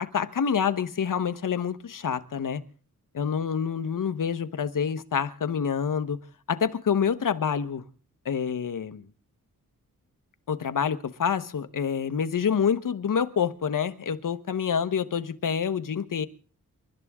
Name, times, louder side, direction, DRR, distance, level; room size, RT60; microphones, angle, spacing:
voice 1, 0.0-2.6 3.1-6.2 6.5-7.8 8.2-9.1 10.5-16.3, left 7 dB, 70° left, 1.1 m, -27 dB
28.5 x 12.5 x 3.6 m
wide cardioid pair, 85°, 33 cm